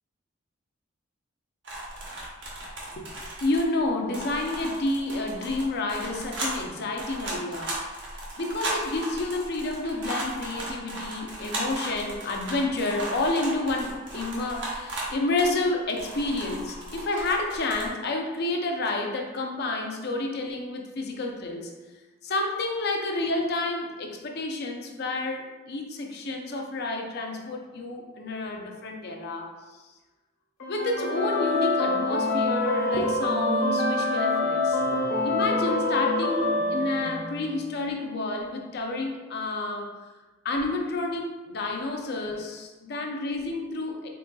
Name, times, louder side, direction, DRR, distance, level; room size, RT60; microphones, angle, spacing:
sound 1, 1.6-3.9 4.1-15.6 16.0-17.9, right 1 dB, 65° right, 1.0 m, -36 dB
voice 1, 3.4-21.7 22.2-29.5 30.7-34.8 35.2-39.9 40.4-44.1, left 2 dB, 55° left, 2 dB, 0.5 m, -29 dB
sound 2, 30.6-37.6, left 2 dB, 85° left, 1.1 m, -26 dB
3.9 x 3.7 x 2.3 m, 1.2 s
head